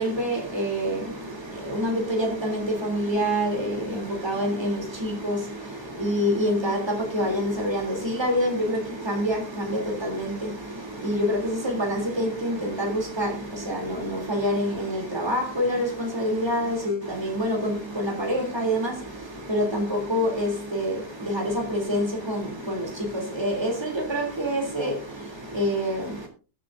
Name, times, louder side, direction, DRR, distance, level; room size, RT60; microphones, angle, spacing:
voice 1, 0.0-26.3, equal, 15° right, 3.3 m, -27 dB
22.0 x 7.8 x 2.7 m
omnidirectional pair, 1.7 m